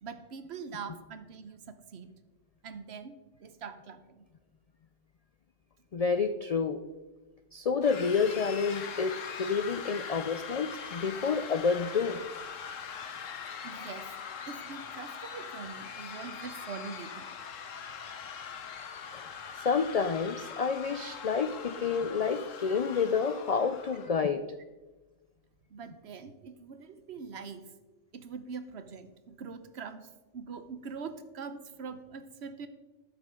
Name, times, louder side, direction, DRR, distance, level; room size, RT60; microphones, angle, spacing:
voice 1, 0.0-2.1 2.6-4.3 13.6-14.1 14.5-17.3 25.7-27.6 28.1-32.7, right 5 dB, 60° right, 10 dB, 1.0 m, -43 dB
voice 2, 5.9-6.8 7.5-9.1 9.4-12.2 19.1-19.2 19.6-24.4, left 5 dB, 65° left, 9 dB, 0.3 m, -29 dB
sound 1, 7.8-24.1, left 7 dB, 85° left, 1.3 m, -42 dB
13.0 x 9.7 x 3.7 m, 1.2 s
omnidirectional pair, 1.3 m